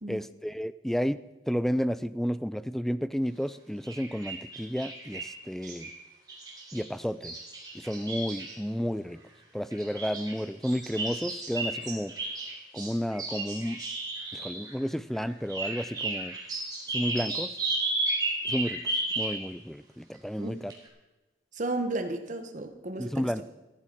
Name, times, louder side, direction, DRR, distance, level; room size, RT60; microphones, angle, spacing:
voice 1, 0.1-1.2 1.5-5.9 6.7-7.4 7.7-9.2 9.5-12.1 12.7-13.8 14.3-16.3 16.9-17.6 18.5-20.7 23.0-23.4, equal, ahead, 15 dB, 0.3 m, -31 dB
sound 1, 3.8-5.3 5.6-6.0 6.3-8.5 9.7-14.7 15.1-19.4 20.1-20.2 20.7-20.8, right 2 dB, 20° right, 3.8 m, -34 dB
voice 2, 21.5-23.4, right 2 dB, 40° right, 7 dB, 1.2 m, -34 dB
14.5 x 14.0 x 4.6 m, 1.1 s
head